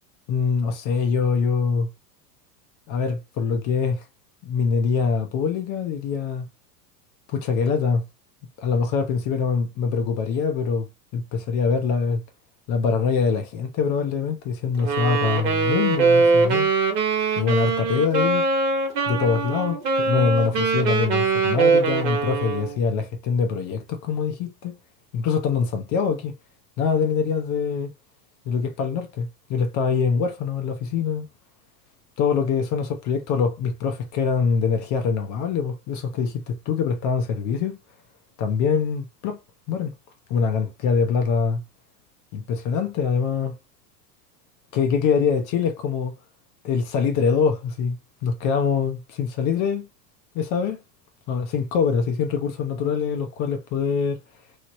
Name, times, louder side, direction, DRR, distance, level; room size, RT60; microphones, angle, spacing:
voice 1, 0.3-1.9 2.9-4.0 4.4-6.5 7.3-8.0 8.6-10.9 11.1-12.2 12.7-16.7 17.4-18.5 19.1-24.8 25.1-26.3 26.8-27.9 28.5-31.3 32.2-37.8 38.4-39.4 39.7-39.9 40.3-41.6 42.3-43.5 44.7-46.1 46.6-48.0 48.2-49.9 50.3-50.8 51.3-54.2, left 5 dB, 40° left, 0.6 m, -24 dB
Wind instrument woodwind instrument, 14.8-22.8, right 4 dB, 80° right, 1.1 m, -22 dB
3.1 x 2.0 x 2.9 m
hypercardioid pair, 100°, 49 cm